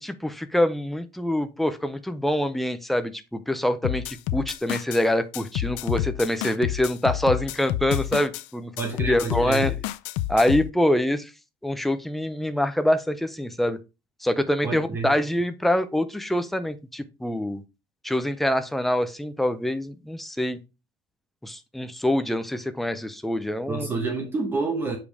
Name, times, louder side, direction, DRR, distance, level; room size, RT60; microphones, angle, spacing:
voice 1, 0.0-8.7 9.1-9.7 10.3-11.3 11.6-13.8 14.2-17.6 18.0-20.6 21.4-23.9, left 1 dB, ahead, 0.5 m, -25 dB
sound 1, 3.8-5.0 5.3-8.4 8.8-10.7, left 14 dB, 70° left, 0.4 m, -29 dB
voice 2, 8.8-9.7 14.6-15.1 23.7-25.0, right 3 dB, 20° right, 1.0 m, -28 dB
6.8 x 5.1 x 3.4 m
cardioid pair, 160°, 11 cm